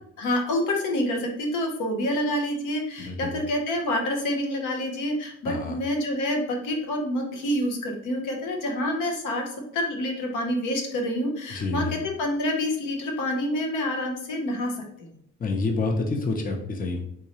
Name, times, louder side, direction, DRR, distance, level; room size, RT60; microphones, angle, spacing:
voice 1, 0.2-9.4 9.7-14.7, left 1 dB, 85° left, 1 dB, 0.8 m, -27 dB
voice 2, 3.0-3.3 5.4-5.8 11.5-12.0 15.4-17.0, left 3 dB, 30° left, 3 dB, 0.6 m, -28 dB
3.7 x 2.9 x 2.9 m, 0.73 s
cardioid pair, 90°, 30 cm